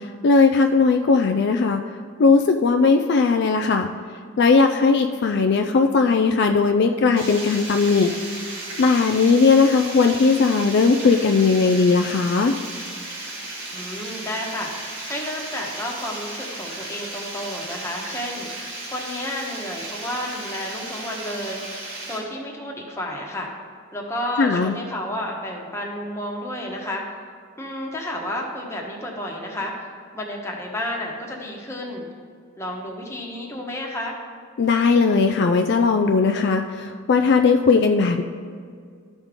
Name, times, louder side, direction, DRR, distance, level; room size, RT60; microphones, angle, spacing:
voice 1, 0.0-1.8 2.2-3.9 4.4-8.1 8.8-12.5 24.4-24.7 34.6-38.2, left 4 dB, 55° left, 5 dB, 0.4 m, -18 dB
Water, 7.2-22.2, right 2 dB, 85° right, 2.4 m, -35 dB
voice 2, 13.7-21.6 22.1-23.5 23.9-27.0 27.6-29.7 30.1-32.1 32.6-34.2, left 1 dB, 15° left, -1 dB, 1.1 m, -31 dB
13.0 x 5.1 x 3.7 m, 2.1 s
head